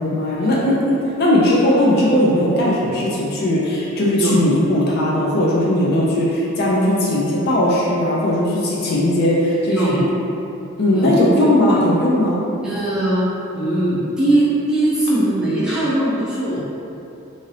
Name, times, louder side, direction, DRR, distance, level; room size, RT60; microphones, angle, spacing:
voice 1, 0.0-10.0 10.8-12.4, left 1 dB, 50° left, -5 dB, 0.4 m, -18 dB
voice 2, 12.6-13.2 13.5-16.6, right 1 dB, 5° right, -11 dB, 0.6 m, -20 dB
2.6 x 2.5 x 3.2 m, 2.7 s
head